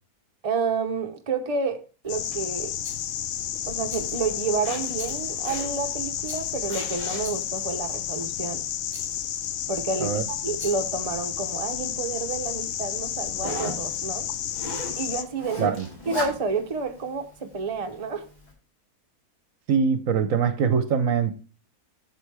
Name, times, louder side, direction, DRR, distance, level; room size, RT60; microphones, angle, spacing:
voice 1, 0.4-2.7 3.7-8.6 9.7-10.1 10.4-14.3 15.0-15.8 16.1-18.2, right 4 dB, 35° right, 0.6 m, -29 dB
Zipper (clothing), 2.0-18.5, right 1 dB, 25° left, 2.6 m, -41 dB
sound 1, 2.1-15.2, left 10 dB, 65° left, 0.8 m, -31 dB
Rattle, 2.8-3.1 3.9-4.3 4.9-5.3 6.2-6.7 7.2-7.6 8.9-9.2 10.5-10.9, right 1 dB, 5° right, 2.3 m, -46 dB
voice 2, 19.7-21.3, right 6 dB, 65° right, 1.0 m, -23 dB
7.9 x 7.1 x 3.4 m
omnidirectional pair, 1.7 m